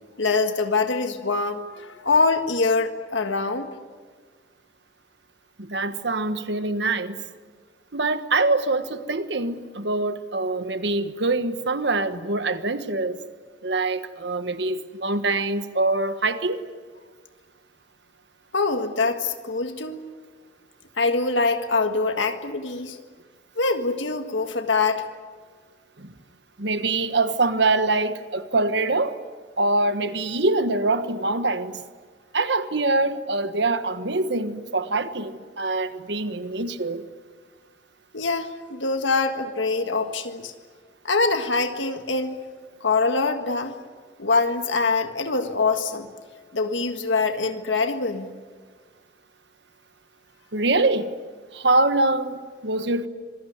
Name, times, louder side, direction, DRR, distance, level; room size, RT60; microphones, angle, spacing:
voice 1, 0.2-3.7 18.5-20.0 21.0-23.0 23.6-25.0 38.1-40.5 41.0-42.3 42.8-43.7 44.2-46.1 46.5-48.3, left 3 dB, 80° left, 6 dB, 1.7 m, -24 dB
voice 2, 5.6-7.2 7.9-13.2 13.6-16.6 26.0-26.1 26.6-29.2 29.6-31.8 32.3-37.0 50.5-51.1 51.5-53.1, right 2 dB, 65° right, 10 dB, 1.4 m, -24 dB
26.5 x 21.5 x 9.5 m, 1.5 s
head